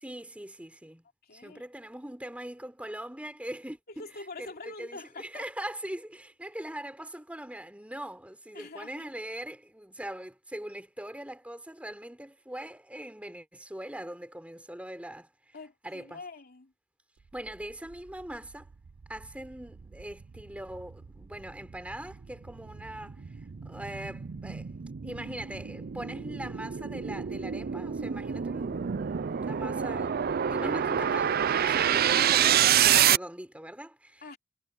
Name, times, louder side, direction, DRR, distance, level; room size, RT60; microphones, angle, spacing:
voice 1, 0.0-1.0 1.3-4.0 4.4-15.6 15.8-16.2 17.3-18.7 19.1-24.7 25.0-34.2, right 1 dB, 5° right, 3.8 m, -41 dB
voice 2, 1.2-1.6 4.0-5.4 8.5-9.1 15.5-16.7 34.2-34.4, left 3 dB, 45° left, 3.3 m, -45 dB
sound 1, 18.5-18.6 19.0-33.2, right 9 dB, 45° right, 0.4 m, -28 dB
head